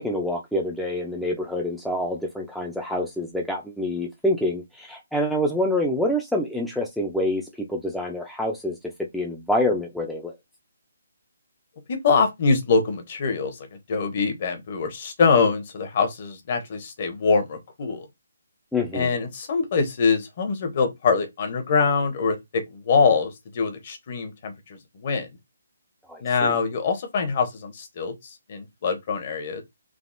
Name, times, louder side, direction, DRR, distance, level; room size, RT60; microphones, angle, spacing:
voice 1, 0.0-8.8 9.1-10.3 18.7-19.1 26.1-26.5, left 1 dB, ahead, 0.3 m, -26 dB
voice 2, 11.9-18.1 18.9-25.3 26.2-28.1 28.5-29.6, left 5 dB, 35° left, 0.7 m, -24 dB
3.4 x 2.3 x 2.5 m
hypercardioid pair, 170°, 0 cm